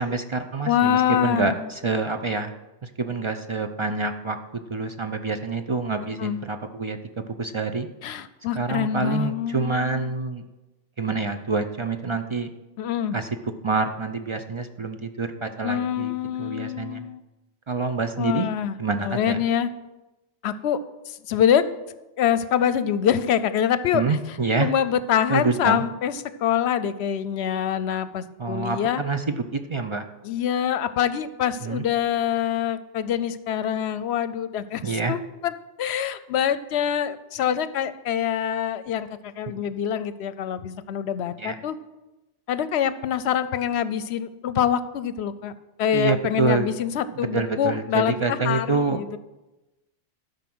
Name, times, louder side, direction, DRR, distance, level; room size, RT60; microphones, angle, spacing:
voice 1, 0.0-2.5 2.8-7.9 8.6-10.4 11.0-12.5 13.1-13.3 13.6-16.1 16.4-17.0 17.7-18.5 18.8-19.4 23.9-24.7 25.3-25.8 28.4-30.0 31.6-31.8 34.8-35.1 39.5-39.6 41.4-41.6 45.9-46.7 47.2-49.0, right 4 dB, 45° right, 7 dB, 0.4 m, -27 dB
voice 2, 0.7-1.7 6.2-6.4 8.0-10.1 12.8-13.2 15.6-17.2 18.2-18.8 19.0-19.7 20.4-20.8 21.1-21.6 22.2-24.2 24.6-26.1 26.4-29.0 30.2-41.8 42.5-45.5 45.8-49.2, left 9 dB, 70° left, 14 dB, 0.8 m, -25 dB
13.0 x 5.3 x 6.1 m, 1.0 s
omnidirectional pair, 1.2 m